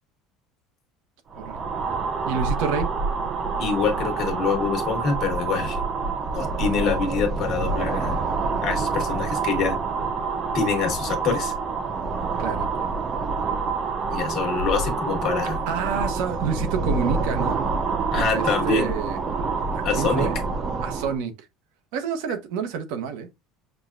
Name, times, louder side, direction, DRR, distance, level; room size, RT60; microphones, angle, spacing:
sound 1, 1.3-21.2, right 4 dB, 30° right, 0.4 m, -27 dB
voice 1, 2.2-2.9 9.1-9.2 12.4-12.7 15.7-17.6 18.1-19.2 19.7-20.4 20.8-21.3 21.9-23.3, right 6 dB, 80° right, 0.8 m, -28 dB
voice 2, 3.6-5.8 6.3-8.2 8.6-9.8 10.5-11.5 14.1-15.6 18.1-18.9 19.8-20.3, left 5 dB, 45° left, 1.2 m, -25 dB
6.1 x 2.2 x 2.4 m
cardioid pair, 140°, 0 cm